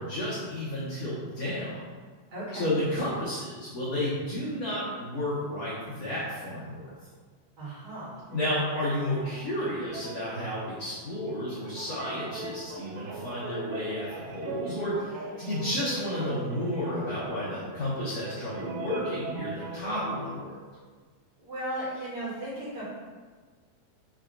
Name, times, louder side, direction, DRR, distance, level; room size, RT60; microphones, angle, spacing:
voice 1, 0.0-2.0 2.6-6.9 8.3-20.6, left 1 dB, 80° left, -9 dB, 1.4 m, -32 dB
voice 2, 2.3-2.7 7.6-8.1 21.4-22.9, right 1 dB, 45° right, -9 dB, 1.3 m, -36 dB
sound 1, 8.2-20.3, right 4 dB, 90° right, 2.5 m, -42 dB
6.0 x 2.3 x 3.7 m, 1.5 s
omnidirectional pair, 4.2 m